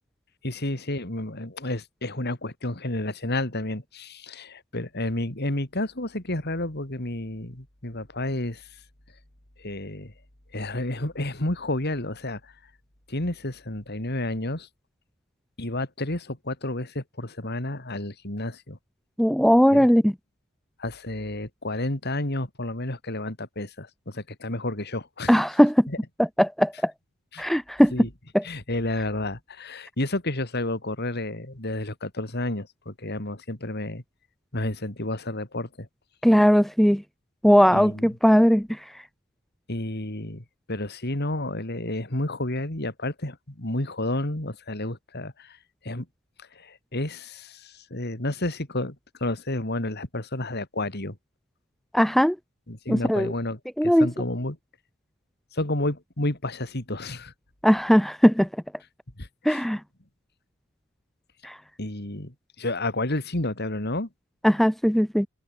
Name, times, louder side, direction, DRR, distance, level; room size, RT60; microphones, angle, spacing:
voice 1, 0.4-8.8 9.6-10.1 10.5-12.5 13.1-14.7 15.6-18.8 19.7-19.9 20.8-25.4 25.9-26.0 27.3-27.5 27.9-28.1 28.4-34.0 34.5-35.9 37.7-38.1 39.7-46.1 46.4-51.2 52.7-54.6 55.5-57.3 59.2-59.6 61.8-64.1, left 1 dB, 45° left, 3.2 m, -31 dB
voice 2, 19.2-20.1 25.3-25.9 26.2-26.9 27.4-27.9 28.3-28.4 36.2-37.0 37.4-38.8 51.9-52.4 52.9-53.3 53.8-54.1 57.6-58.5 59.4-59.8 61.4-61.6 64.4-65.3, equal, ahead, 0.6 m, -19 dB
head